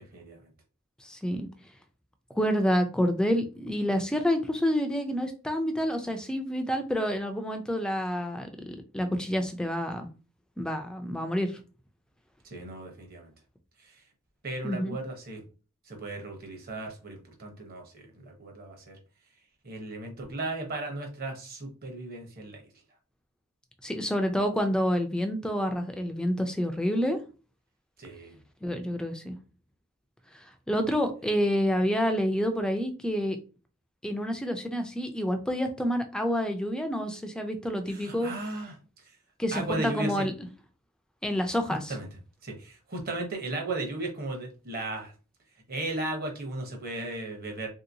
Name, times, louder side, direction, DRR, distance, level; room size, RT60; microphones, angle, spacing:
voice 1, 0.1-0.5 12.4-13.3 13.8-14.0 14.4-15.4 15.9-19.0 19.6-22.6 28.0-28.4 37.9-38.8 39.0-39.2 39.5-40.2 41.9-42.1 42.4-45.1 45.7-47.7, right 2 dB, 40° right, 2 dB, 0.9 m, -36 dB
voice 2, 1.0-1.5 2.4-10.1 10.6-11.5 14.6-15.0 23.8-27.2 28.6-29.4 30.7-33.4 34.0-38.3 39.4-40.3 41.2-41.9, equal, 5° left, 6 dB, 0.3 m, -28 dB
3.0 x 2.8 x 2.6 m, 0.34 s
head